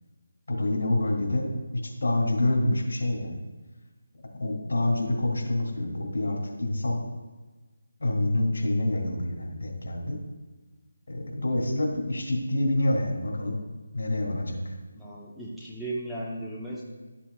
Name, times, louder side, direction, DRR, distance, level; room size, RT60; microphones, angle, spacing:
voice 1, 0.5-1.5 1.7-3.4 4.4-7.0 8.0-10.2 11.1-13.6 13.9-14.7, left 1 dB, 75° left, 0 dB, 2.6 m, -27 dB
voice 2, 14.9-16.8, right 1 dB, ahead, -8 dB, 0.9 m, -36 dB
12.5 x 7.3 x 2.4 m, 1.2 s
figure-of-eight pair, 165°, 0 cm